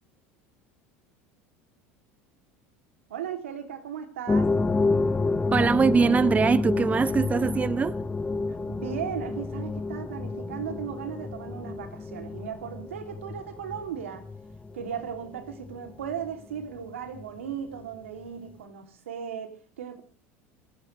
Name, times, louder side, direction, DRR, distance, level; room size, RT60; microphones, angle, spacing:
voice 1, 3.1-4.5 8.5-14.2 14.7-20.0, right 8 dB, 90° right, 2.9 m, -36 dB
sound 1, 4.3-16.9 17.1-17.3 17.9-18.0, left 3 dB, 15° left, 1.3 m, -29 dB
voice 2, 5.5-8.0, right 5 dB, 20° right, 0.6 m, -22 dB
28.5 x 11.0 x 3.3 m
hypercardioid pair, 90°, 7 cm